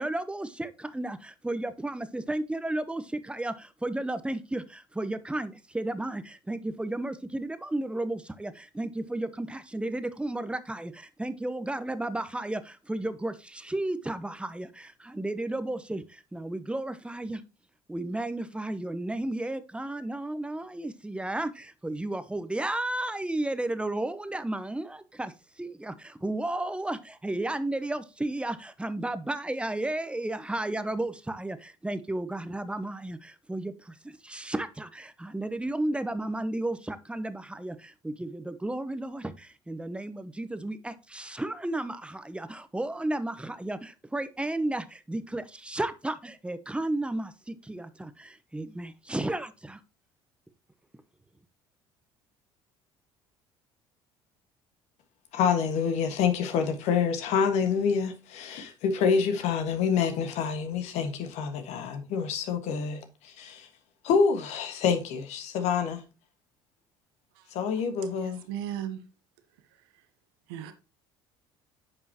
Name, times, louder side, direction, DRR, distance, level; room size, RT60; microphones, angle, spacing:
voice 1, 0.0-17.4 17.9-25.3 25.6-49.8, right 1 dB, 10° right, 1.0 m, -33 dB
voice 2, 55.3-63.7 64.0-66.0 67.5-68.4, left 6 dB, 70° left, 1.6 m, -27 dB
voice 3, 68.2-69.0 70.5-70.7, right 10 dB, 85° right, 1.0 m, -35 dB
9.3 x 5.5 x 2.9 m
hypercardioid pair, 65°, 12 cm